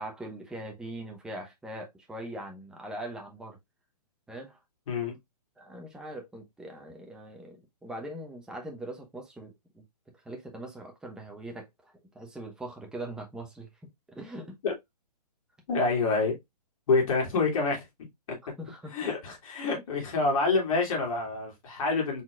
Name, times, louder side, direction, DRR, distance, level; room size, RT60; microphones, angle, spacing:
voice 1, 0.0-3.6 4.3-4.6 5.6-9.8 10.2-13.7 14.1-14.6 18.6-18.9, right 1 dB, 5° right, 0.8 m, -41 dB
voice 2, 15.7-16.4 16.9-17.9 18.9-22.2, left 3 dB, 55° left, 2.3 m, -27 dB
4.1 x 4.0 x 2.3 m
hypercardioid pair, 135°, 21 cm